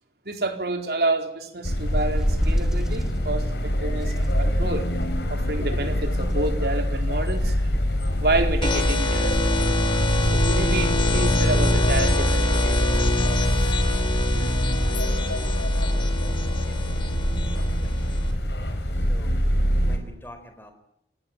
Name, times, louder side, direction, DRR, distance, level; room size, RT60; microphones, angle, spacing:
voice 1, 0.3-4.9 5.3-7.7 8.2-9.8 10.2-13.0, right 2 dB, 65° right, 5 dB, 4.1 m, -29 dB
sound 1, 1.6-20.0, equal, 80° left, 5.1 m, -25 dB
sound 2, 1.9-3.2 4.1-5.4 6.0-6.7 7.4-9.0, equal, 5° right, 2.2 m, -28 dB
sound 3, 8.6-18.3, left 1 dB, 25° left, 3.0 m, -24 dB
voice 2, 16.6-17.3 17.5-18.1 19.1-19.4 19.8-20.7, left 1 dB, 10° left, 7 dB, 4.5 m, -46 dB
28.0 x 19.0 x 9.0 m, 0.71 s
head